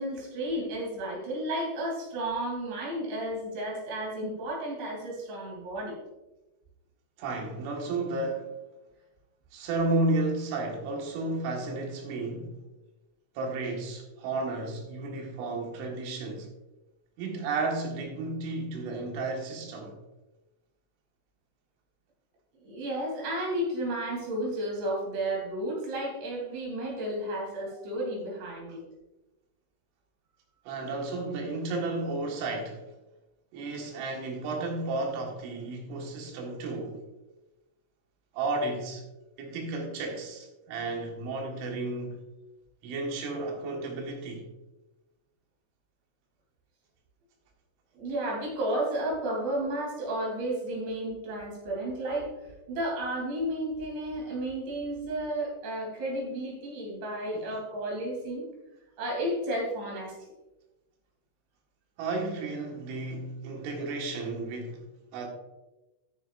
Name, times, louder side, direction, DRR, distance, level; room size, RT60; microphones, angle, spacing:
voice 1, 0.0-5.9 22.6-28.8 48.0-52.3 52.7-58.5 59.0-60.2, right 1 dB, 70° right, 5.4 m, -32 dB
voice 2, 7.2-8.5 9.5-12.6 13.4-16.5 17.2-19.9 30.7-32.8 33.5-37.0 38.3-39.0 39.4-42.2 42.8-44.5 57.3-57.5 62.0-64.8 65.1-65.3, right 2 dB, 85° right, 4.2 m, -32 dB
13.0 x 9.8 x 2.5 m
omnidirectional pair, 5.4 m